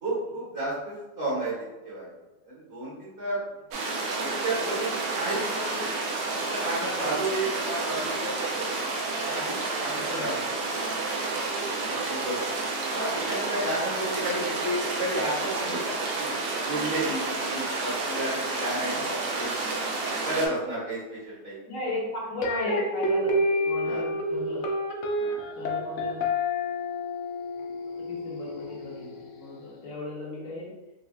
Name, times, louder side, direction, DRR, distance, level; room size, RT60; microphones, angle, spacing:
voice 1, 0.0-1.5 1.8-2.1 2.4-3.4 4.0-5.8 6.3-8.3 9.2-10.3 11.8-12.4 12.9-16.3 16.6-19.5 20.2-21.6 23.8-24.0 25.1-25.4, right 1 dB, 40° right, -10 dB, 1.3 m, -32 dB
sound 1, 3.7-20.5, right 3 dB, 70° right, 1.0 m, -30 dB
voice 2, 10.0-10.5 18.9-19.0 21.7-24.7 25.6-26.3 28.0-30.7, left 1 dB, 55° left, -5 dB, 1.3 m, -36 dB
sound 2, 22.4-29.5, left 1 dB, 90° left, 0.6 m, -29 dB
4.3 x 2.4 x 2.3 m, 1.1 s
omnidirectional pair, 1.8 m